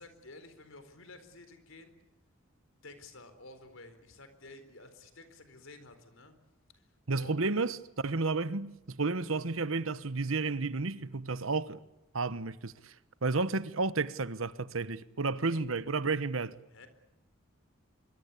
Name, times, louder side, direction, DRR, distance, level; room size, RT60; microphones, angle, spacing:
voice 1, 0.0-1.9 2.8-6.3 7.1-7.5 15.5-15.7 16.7-16.9, left 2 dB, 80° left, 4.2 m, -52 dB
voice 2, 7.1-7.8 8.0-11.8 12.1-12.9 13.2-16.5, right 3 dB, 85° right, 1.1 m, -32 dB
25.0 x 23.5 x 8.5 m
head